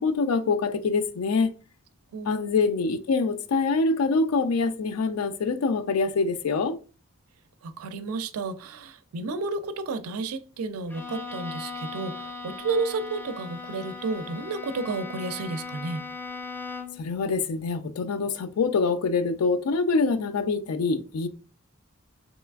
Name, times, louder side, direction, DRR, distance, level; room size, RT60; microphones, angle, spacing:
voice 1, 0.0-1.5 2.3-6.8 17.0-21.3, left 4 dB, 85° left, 0.4 m, -25 dB
voice 2, 2.1-2.6 7.6-16.0, right 3 dB, 85° right, 0.4 m, -32 dB
Bowed string instrument, 10.9-17.1, left 4 dB, 10° left, 0.3 m, -38 dB
3.2 x 2.9 x 2.3 m
head